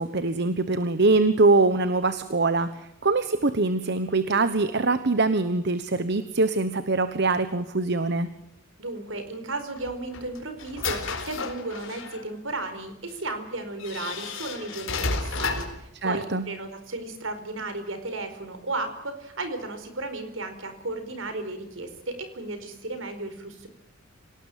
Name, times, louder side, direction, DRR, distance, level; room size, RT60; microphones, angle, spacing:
voice 1, 0.0-8.3 16.0-16.4, right 3 dB, 55° right, 12 dB, 1.2 m, -23 dB
voice 2, 8.8-23.7, right 2 dB, 70° right, 9 dB, 4.6 m, -34 dB
sound 1, 9.8-12.2 13.1-13.2 13.8-15.8, left 4 dB, 75° left, 4.2 m, -32 dB
25.5 x 18.5 x 7.6 m, 0.82 s
head